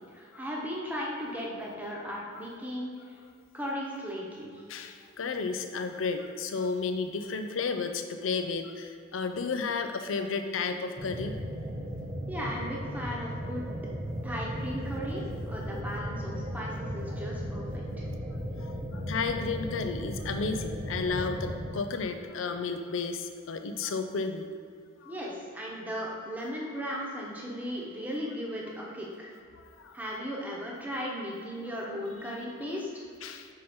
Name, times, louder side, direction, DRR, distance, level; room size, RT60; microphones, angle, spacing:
voice 1, 0.1-2.9 3.5-4.6 12.3-13.8 14.2-18.1 25.0-29.3 29.9-33.0, equal, 10° right, -4 dB, 1.0 m, -36 dB
voice 2, 4.7-11.3 15.1-15.2 15.5-15.6 18.6-24.5 25.0-25.2 29.8-29.9 33.2-33.5, left 4 dB, 85° left, 7 dB, 0.5 m, -32 dB
sound 1, 11.0-21.7, equal, 35° right, 0.6 m, -36 dB
5.5 x 4.9 x 4.3 m, 2.2 s
head